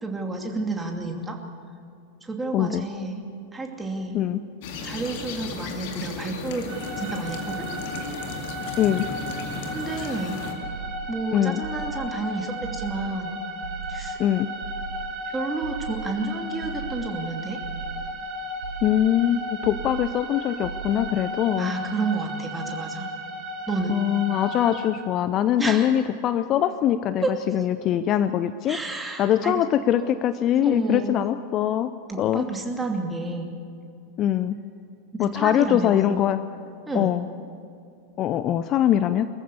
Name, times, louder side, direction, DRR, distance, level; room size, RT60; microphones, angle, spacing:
voice 1, 0.0-1.4 2.2-3.2 3.5-4.2 4.8-7.7 9.7-10.4 11.1-13.4 13.9-14.2 15.3-17.6 21.6-23.1 23.7-24.0 25.6-25.9 27.2-27.3 28.7-29.6 30.6-31.2 32.1-33.5 35.1-36.2 36.9-37.1, right 3 dB, 10° right, 2 dB, 2.7 m, -30 dB
voice 2, 2.5-2.8 4.1-4.4 8.8-9.1 11.3-11.6 14.2-14.5 18.8-21.7 23.9-28.8 29.2-31.9 32.2-32.5 34.2-34.6 35.2-36.4 36.9-37.2 38.2-39.3, left 11 dB, 35° left, 13 dB, 0.6 m, -22 dB
sound 1, 4.6-10.5, left 4 dB, 50° left, 2.3 m, -35 dB
sound 2, 6.7-24.9, equal, 35° right, 4.0 m, -35 dB
sound 3, 10.6-11.3 11.6-12.3 12.6-13.2 13.6-14.3 14.6-15.2 15.6-16.3 16.6-17.2 17.6-18.3 18.6-19.3 19.6-20.3 20.6-21.3, right 6 dB, 65° right, 0.5 m, -38 dB
23.5 x 14.5 x 8.4 m, 2.4 s
figure-of-eight pair, 90°, 0 cm